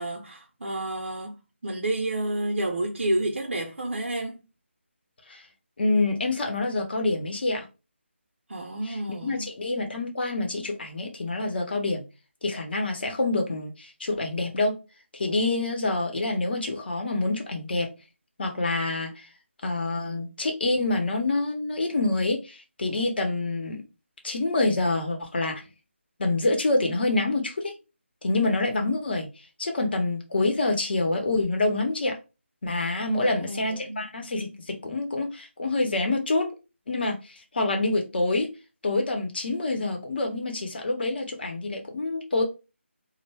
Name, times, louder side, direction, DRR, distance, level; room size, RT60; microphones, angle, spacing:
voice 1, 0.0-1.4 1.6-4.4 8.5-9.5 33.1-34.0, right 1 dB, 65° right, 0.6 m, -30 dB
voice 2, 5.8-7.6 8.8-9.0 9.2-12.0 12.4-14.8 15.1-17.9 18.4-19.3 19.6-23.8 24.2-25.7 26.2-27.8 28.2-29.3 29.6-32.2 32.6-36.5 36.9-38.5 38.8-42.4, left 2 dB, 50° left, 0.7 m, -26 dB
2.2 x 2.1 x 3.3 m
figure-of-eight pair, 160°, 7 cm